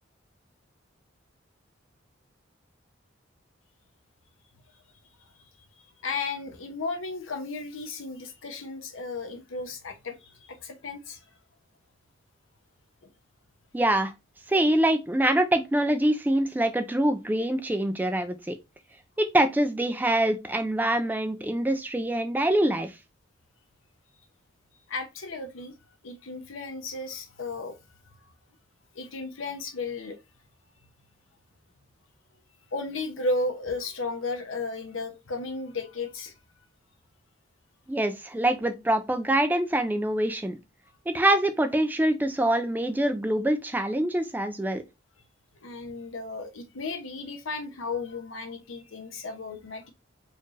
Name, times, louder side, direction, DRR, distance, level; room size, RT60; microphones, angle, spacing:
voice 1, 6.0-11.2 24.9-25.7 26.0-27.8 28.9-30.2 32.7-36.3 45.6-49.9, left 3 dB, 85° left, 0.8 m, -34 dB
voice 2, 13.7-14.1 14.5-18.6 19.2-22.9 37.9-40.6 41.1-44.8, right 1 dB, 10° right, 0.3 m, -25 dB
4.3 x 2.5 x 3.1 m
head